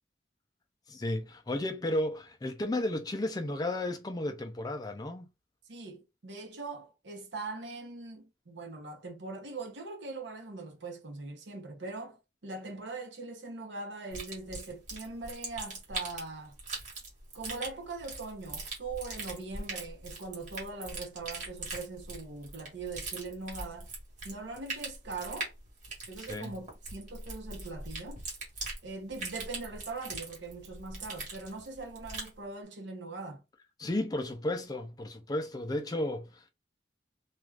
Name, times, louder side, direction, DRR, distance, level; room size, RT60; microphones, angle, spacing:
voice 1, 0.9-5.3 26.2-26.5 33.8-36.5, left 1 dB, 20° left, 0.4 m, -33 dB
voice 2, 5.7-16.5 17.3-23.9 24.2-25.5 26.1-28.2 28.8-33.4, right 3 dB, 75° right, 0.8 m, -41 dB
sound 1, 14.1-32.4, right 3 dB, 40° right, 1.1 m, -41 dB
2.4 x 2.3 x 3.2 m
head